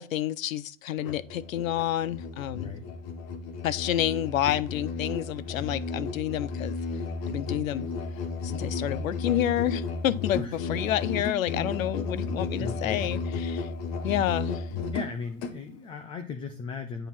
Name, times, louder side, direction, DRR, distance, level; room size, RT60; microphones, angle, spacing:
voice 1, 0.0-2.7 3.6-6.8 7.3-7.9 8.4-10.4 10.7-13.7 14.0-14.6, left 12 dB, 75° left, 0.8 m, -29 dB
Musical instrument, 1.0-15.6, left 4 dB, 40° left, 1.4 m, -33 dB
voice 2, 2.5-2.8 10.3-11.0 12.6-13.2 14.9-17.1, left 5 dB, 15° left, 0.5 m, -37 dB
9.1 x 4.6 x 5.6 m
hypercardioid pair, 145°, 41 cm